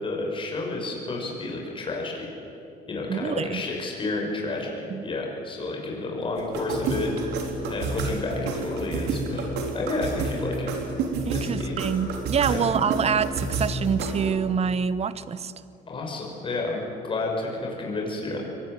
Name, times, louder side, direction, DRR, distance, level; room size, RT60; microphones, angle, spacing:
voice 1, 0.0-2.3 2.9-7.3 7.7-9.5 9.7-10.7 11.4-11.7 12.5-12.7 15.9-18.4, left 2 dB, 30° left, -1 dB, 6.3 m, -30 dB
voice 2, 3.1-3.6 4.9-5.1 11.3-15.5, right 7 dB, 40° right, 15 dB, 1.0 m, -26 dB
sound 1, 6.4-14.3, right 3 dB, 80° right, 3.7 m, -30 dB
24.0 x 19.0 x 9.1 m, 2.6 s
cardioid pair, 110°, 17 cm